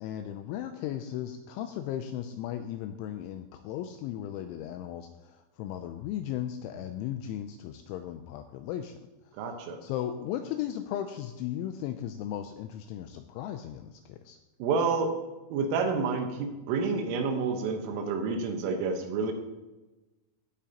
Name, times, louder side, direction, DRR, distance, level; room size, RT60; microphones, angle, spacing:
voice 1, 0.0-9.0 9.5-14.4, left 11 dB, 85° left, 7 dB, 2.7 m, -36 dB
voice 2, 9.4-9.8 14.6-15.1 15.5-19.3, right 4 dB, 80° right, 4 dB, 3.7 m, -29 dB
16.0 x 8.9 x 2.9 m, 1.1 s
omnidirectional pair, 5.9 m